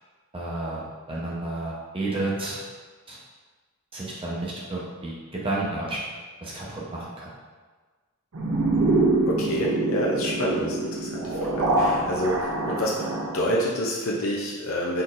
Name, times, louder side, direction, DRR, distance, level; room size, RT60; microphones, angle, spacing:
voice 1, 0.3-2.6 3.1-3.2 3.9-6.1 6.4-7.3, right 2 dB, 25° right, -5 dB, 0.8 m, -31 dB
sound 1, 8.3-13.5, right 2 dB, 80° right, 0.6 m, -25 dB
voice 2, 9.3-15.0, equal, 65° left, -3 dB, 0.6 m, -28 dB
4.3 x 3.8 x 2.5 m, 1.4 s
head